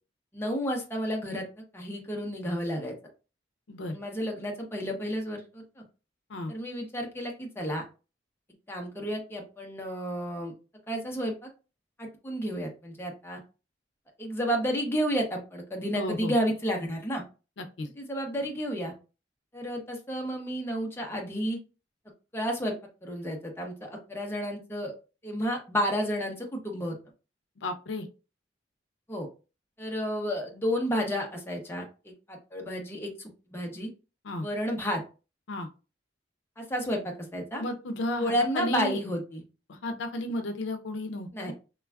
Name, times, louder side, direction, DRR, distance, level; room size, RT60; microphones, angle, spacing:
voice 1, 0.3-1.4 1.7-2.9 3.9-5.8 6.5-7.8 8.7-10.5 10.9-11.5 12.0-13.4 14.2-17.2 18.0-18.9 19.5-21.6 22.3-22.8 23.0-24.9 25.2-26.9 29.1-29.3 29.8-33.1 33.5-33.9 34.4-35.0 36.6-37.6 38.2-39.4 41.3-41.5, equal, 15° left, 1 dB, 0.6 m, -31 dB
voice 2, 15.9-16.3 17.6-17.9 27.6-28.1 34.2-34.5 35.5-35.7 37.6-39.0 39.7-41.5, left 1 dB, 80° left, 6 dB, 0.5 m, -33 dB
3.2 x 2.3 x 2.2 m, 0.32 s
head